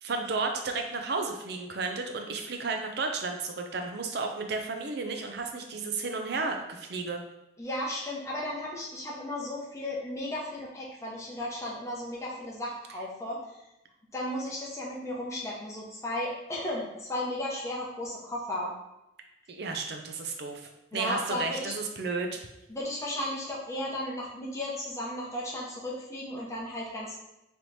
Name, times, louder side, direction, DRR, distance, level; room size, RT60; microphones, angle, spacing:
voice 1, 0.0-7.2 19.5-22.4, right 4 dB, 55° right, 4 dB, 0.5 m, -33 dB
voice 2, 7.6-13.6 14.1-18.7 20.9-21.7 22.7-27.1, left 1 dB, 15° left, -4 dB, 0.9 m, -35 dB
3.4 x 3.0 x 4.0 m, 0.92 s
head